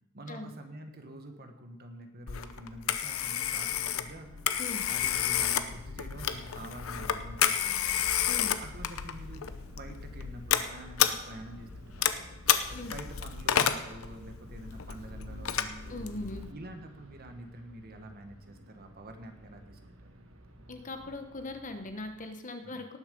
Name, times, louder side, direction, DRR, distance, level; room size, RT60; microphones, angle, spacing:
voice 1, 0.1-4.5 4.9-8.0 8.6-16.0 16.5-20.1 22.6-22.8, right 1 dB, 50° right, 5 dB, 1.5 m, -47 dB
Telephone, 2.3-16.5, left 9 dB, 90° left, 0.7 m, -31 dB
sound 1, 3.7-22.4, equal, 75° right, 1.5 m, -54 dB
voice 2, 15.9-16.5 20.7-23.0, left 2 dB, 40° left, 7 dB, 1.0 m, -40 dB
18.5 x 7.0 x 5.3 m, 0.95 s
head